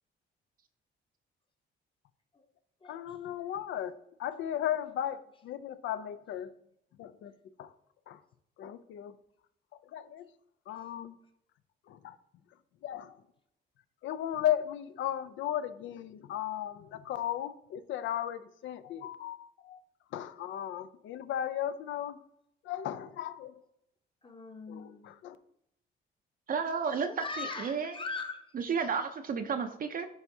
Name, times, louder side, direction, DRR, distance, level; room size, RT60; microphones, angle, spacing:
voice 1, 2.9-3.9 4.2-6.5 7.0-7.3 7.6-7.7 8.1-8.2 8.6-9.1 9.9-10.3 10.7-11.1 11.9-12.2 12.8-13.1 14.0-19.8 20.1-22.2 22.7-23.5 24.7-25.4, left 11 dB, 75° left, 14 dB, 0.5 m, -35 dB
voice 2, 24.2-25.0 27.1-28.5, left 4 dB, 25° left, 6 dB, 0.9 m, -40 dB
voice 3, 26.5-27.1 27.4-27.9 28.5-30.1, right 6 dB, 45° right, 7 dB, 0.5 m, -32 dB
10.5 x 3.5 x 2.7 m, 0.76 s
cardioid pair, 90°, 20 cm